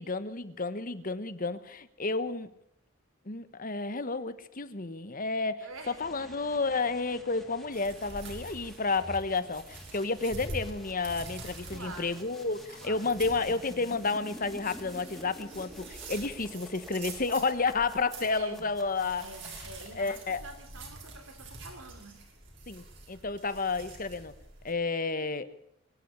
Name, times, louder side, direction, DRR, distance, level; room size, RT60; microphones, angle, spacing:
voice 1, 0.0-2.5 3.3-19.2 19.9-20.4 22.7-24.3 24.6-25.5, left 3 dB, 40° left, 13 dB, 1.2 m, -31 dB
voice 2, 5.6-6.3 11.7-12.2 12.8-13.1 18.3-18.7 19.2-22.2, right 2 dB, 80° right, 8 dB, 3.6 m, -46 dB
sound 1, 5.7-20.0, equal, ahead, 3.1 m, -51 dB
sound 2, 7.7-24.7, right 2 dB, 60° right, 6.1 m, -46 dB
23.0 x 11.5 x 9.9 m, 0.72 s
head